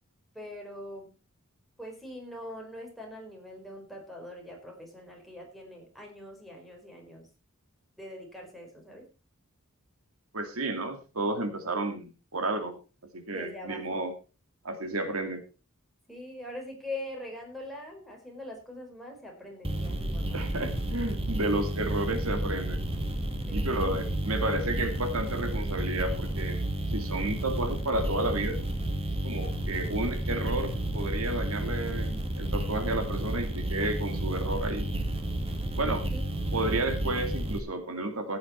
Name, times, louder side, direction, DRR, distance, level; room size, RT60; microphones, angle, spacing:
voice 1, 0.3-1.1 1.8-7.3 8.0-9.1 13.3-14.1 16.1-20.7 23.5-23.9 36.1-36.2 36.5-36.9, left 1 dB, ahead, 0 dB, 4.4 m, -43 dB
voice 2, 10.3-12.8 13.1-14.1 14.6-15.4 20.3-22.8 23.5-26.7 26.9-28.7 29.2-34.9 35.8-36.1 36.5-38.4, right 2 dB, 80° right, 7 dB, 2.3 m, -31 dB
sound 1, 19.6-37.6, right 1 dB, 25° right, 2.2 m, -31 dB
15.0 x 9.5 x 4.3 m, 0.33 s
head